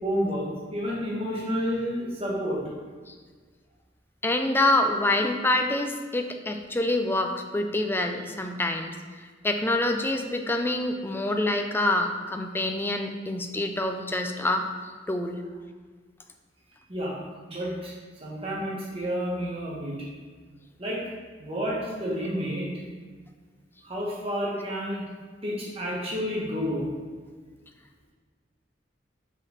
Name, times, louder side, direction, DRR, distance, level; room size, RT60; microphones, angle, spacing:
voice 1, 0.0-2.6 16.9-17.1 17.5-17.9 18.2-19.9 20.8-21.0 21.4-22.7 23.8-25.0 25.4-26.9, equal, 35° right, -5 dB, 1.5 m, -30 dB
voice 2, 4.2-8.9 9.4-14.6 15.1-15.4, left 2 dB, 10° left, 5 dB, 0.4 m, -26 dB
5.3 x 5.0 x 3.9 m, 1.5 s
head